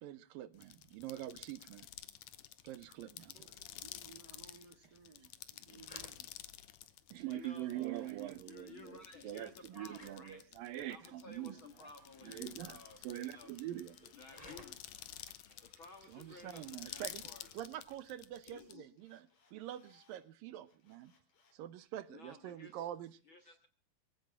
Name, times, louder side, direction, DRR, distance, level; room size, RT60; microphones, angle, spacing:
voice 1, 0.0-1.9 2.6-3.3 7.1-11.6 12.2-14.1 16.1-17.2 17.5-21.1 21.5-23.2, right 13 dB, 75° right, 15 dB, 2.6 m, -45 dB
sound 1, 0.5-18.7, left 13 dB, 70° left, 2.3 m, -51 dB
voice 2, 2.8-6.3, right 6 dB, 35° right, 8 dB, 2.1 m, -60 dB
sound 2, 4.5-18.3, left 1 dB, 10° left, 2.6 m, -64 dB
voice 3, 5.6-6.0 6.8-8.1 8.4-10.4 10.7-13.5 14.1-14.9 15.7-17.7 18.4-18.9 22.1-22.9 23.2-23.7, left 3 dB, 45° left, 7 dB, 1.8 m, -55 dB
Drill, 11.3-17.6 19.0-20.2 20.6-21.6, left 4 dB, 85° left, 6.0 m, -71 dB
23.5 x 16.0 x 3.6 m, 0.35 s
omnidirectional pair, 4.2 m